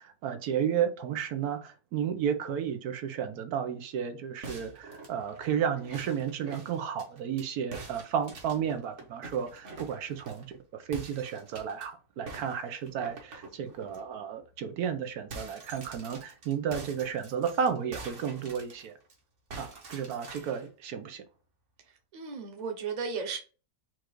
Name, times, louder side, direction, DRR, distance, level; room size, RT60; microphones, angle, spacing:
voice 1, 0.0-10.5 10.7-18.9 19.6-21.2, right 8 dB, 80° right, 1.2 m, -32 dB
sound 1, 4.4-7.5 7.7-10.5 10.9-11.9 12.3-14.0 14.4-14.6 14.9-19.1 19.5-20.7, right 3 dB, 55° right, 1.4 m, -46 dB
voice 2, 22.1-23.4, right 5 dB, 35° right, 0.9 m, -34 dB
4.5 x 2.5 x 4.5 m
omnidirectional pair, 1.6 m